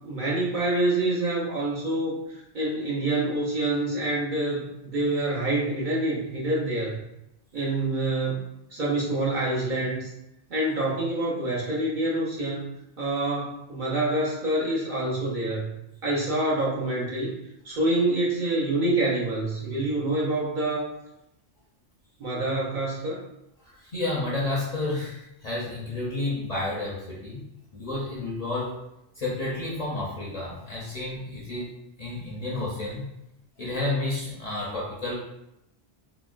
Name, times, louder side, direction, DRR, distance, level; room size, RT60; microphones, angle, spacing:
voice 1, 0.0-2.2 2.5-7.0 7.5-8.4 8.7-10.1 10.5-12.7 13.0-15.7 16.0-17.3 17.6-20.9 22.2-23.2, right 2 dB, 50° right, -5 dB, 0.7 m, -26 dB
voice 2, 23.6-27.4 27.7-28.8 29.2-31.7 32.0-33.1 33.6-35.2, left 2 dB, 45° left, -6 dB, 0.6 m, -31 dB
3.7 x 2.1 x 2.4 m, 0.84 s
omnidirectional pair, 1.2 m